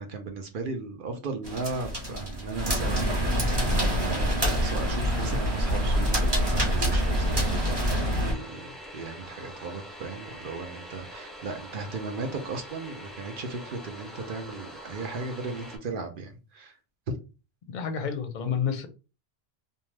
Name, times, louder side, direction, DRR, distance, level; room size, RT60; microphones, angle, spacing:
voice 1, 0.0-16.7 17.1-17.2, right 3 dB, 60° right, 0.7 m, -36 dB
sound 1, 1.4-8.3, equal, 25° right, 0.8 m, -26 dB
sound 2, 4.7-15.8, equal, ahead, 0.3 m, -44 dB
voice 2, 17.7-18.9, left 7 dB, 55° left, 0.6 m, -29 dB
2.6 x 2.2 x 3.1 m
omnidirectional pair, 1.1 m